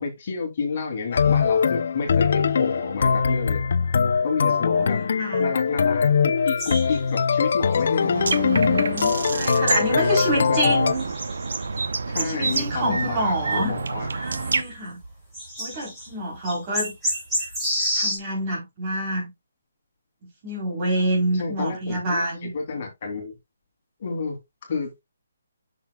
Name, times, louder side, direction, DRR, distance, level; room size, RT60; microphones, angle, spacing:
voice 1, 0.0-3.6 4.2-5.0 5.4-8.4 9.6-10.9 12.1-14.1 21.3-23.4 24.0-25.0, left 4 dB, 40° left, 2.8 m, -30 dB
sound 1, 1.1-10.9, left 6 dB, 55° left, 0.5 m, -22 dB
voice 2, 4.8-5.5 8.0-11.1 12.1-13.7 14.1-15.0 15.6-16.9 17.9-19.3 20.4-22.5, right 1 dB, 25° right, 3.6 m, -27 dB
sound 2, 6.6-7.4 7.7-7.8 8.4-8.5 8.9-9.0 9.9-10.0 10.9-11.8 12.4-13.3 13.8-13.9 14.3-14.7 15.0-15.1 15.3-16.1 16.4-18.2, equal, 5° right, 3.6 m, -29 dB
sound 3, 8.1-14.6, right 4 dB, 75° right, 0.8 m, -28 dB
7.1 x 6.6 x 2.3 m
hypercardioid pair, 165°, 0 cm